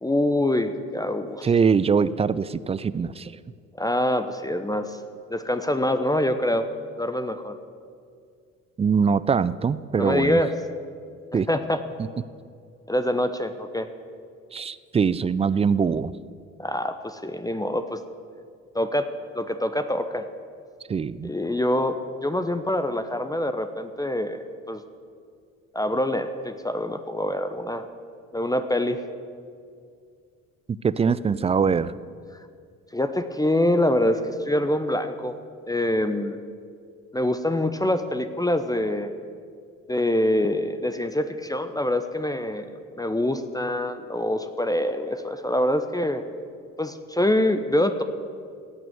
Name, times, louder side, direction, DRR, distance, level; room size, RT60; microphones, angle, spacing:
voice 1, 0.0-1.5 3.7-5.0 5.3-6.7 7.0-7.6 10.0-10.5 11.3-11.8 12.9-13.9 16.6-18.0 18.7-19.1 19.3-20.3 21.2-24.8 25.7-27.9 28.3-29.0 31.0-31.2 32.9-35.4 35.7-36.4 37.1-39.1 39.9-46.2 46.8-48.0, left 1 dB, 10° left, 9 dB, 0.8 m, -25 dB
voice 2, 1.4-3.4 8.8-10.4 11.3-11.5 12.0-12.1 14.5-16.1 20.9-21.3 30.7-31.9, right 6 dB, 15° right, 16 dB, 0.3 m, -23 dB
17.5 x 6.1 x 9.4 m, 2.3 s
hypercardioid pair, 55°, 39 cm